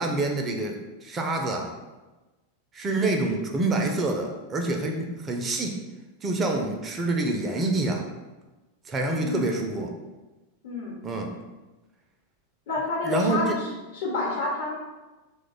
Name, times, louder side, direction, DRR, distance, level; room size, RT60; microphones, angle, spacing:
voice 1, 0.0-1.7 2.7-5.8 6.2-8.1 8.9-9.9 11.0-11.3 13.0-13.6, right 2 dB, 25° right, 2 dB, 0.4 m, -27 dB
voice 2, 10.6-11.0 12.7-13.6 13.9-14.7, left 3 dB, 60° left, -3 dB, 1.0 m, -29 dB
2.9 x 2.1 x 3.9 m, 1.1 s
figure-of-eight pair, 90°, 0 cm